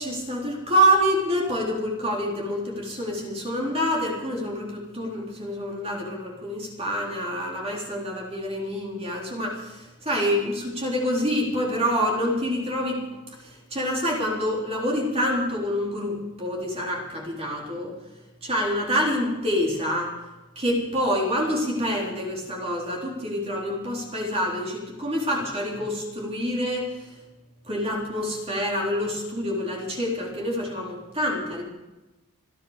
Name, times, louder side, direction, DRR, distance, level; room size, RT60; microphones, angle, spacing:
voice 1, 0.0-13.1 13.4-17.9 18.4-20.1 20.6-27.2 27.7-31.6, equal, 25° right, -2 dB, 3.8 m, -27 dB
27.5 x 10.0 x 5.1 m, 1.1 s
head